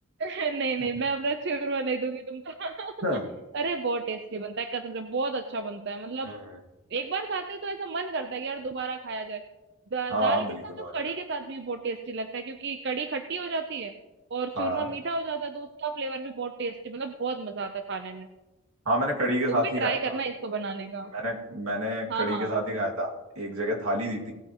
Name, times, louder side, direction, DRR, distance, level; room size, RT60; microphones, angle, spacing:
voice 1, 0.2-2.9 3.5-6.3 6.9-9.4 9.9-13.9 14.3-18.3 19.5-21.1 22.1-22.6, right 4 dB, 50° right, 6 dB, 0.6 m, -32 dB
voice 2, 6.3-6.6 10.1-10.9 14.6-14.9 18.9-20.2 21.1-23.1 23.4-24.3, right 1 dB, 80° right, 0 dB, 2.2 m, -28 dB
18.0 x 9.0 x 3.0 m, 1.1 s
head